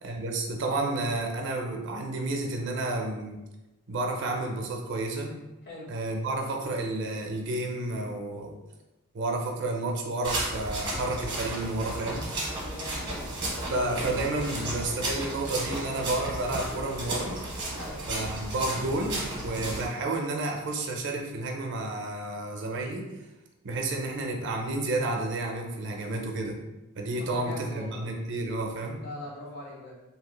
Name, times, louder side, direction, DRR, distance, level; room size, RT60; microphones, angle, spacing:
voice 1, 0.0-3.4 3.9-5.3 5.9-8.5 9.1-12.3 13.7-17.4 18.1-23.1 23.6-26.6 26.9-29.0, right 2 dB, 55° right, 2 dB, 0.4 m, -31 dB
sound 1, 10.2-19.9, right 1 dB, 25° right, 1.0 m, -34 dB
voice 2, 12.5-13.2 17.8-18.0 27.2-28.0 29.0-29.9, left 1 dB, 50° left, -4 dB, 0.9 m, -41 dB
3.0 x 2.7 x 2.2 m, 1.0 s
head